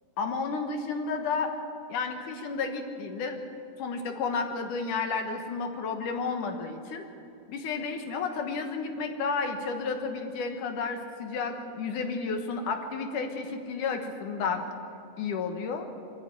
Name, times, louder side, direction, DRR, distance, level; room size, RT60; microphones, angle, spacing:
voice 1, 0.2-1.5 1.9-3.4 3.8-7.0 7.5-14.6 15.2-15.9, left 4 dB, 65° left, 5 dB, 2.3 m, -32 dB
23.5 x 14.5 x 9.0 m, 2.7 s
omnidirectional pair, 4.8 m